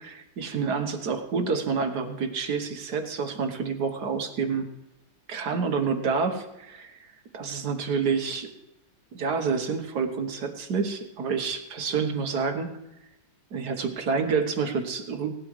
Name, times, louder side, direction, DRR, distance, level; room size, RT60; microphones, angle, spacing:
voice 1, 0.0-4.7 5.3-8.5 9.1-12.7 13.5-15.4, right 5 dB, 55° right, 6 dB, 1.5 m, -28 dB
18.5 x 12.0 x 3.2 m, 0.93 s
omnidirectional pair, 2.4 m